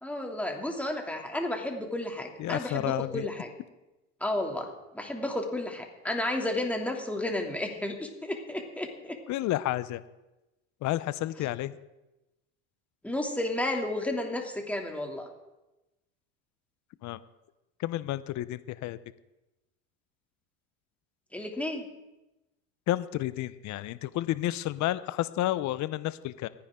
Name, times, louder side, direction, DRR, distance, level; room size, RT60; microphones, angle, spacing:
voice 1, 0.0-3.5 4.2-4.7 4.9-9.2 13.0-15.3 21.3-21.9, left 1 dB, 5° left, 2 dB, 2.9 m, -32 dB
voice 2, 2.4-3.3 9.3-10.0 10.8-11.8 17.0-17.2 17.8-19.0 22.9-26.5, left 15 dB, 50° left, 15 dB, 0.9 m, -31 dB
28.0 x 10.0 x 3.8 m, 1.0 s
supercardioid pair, 90°, 36 cm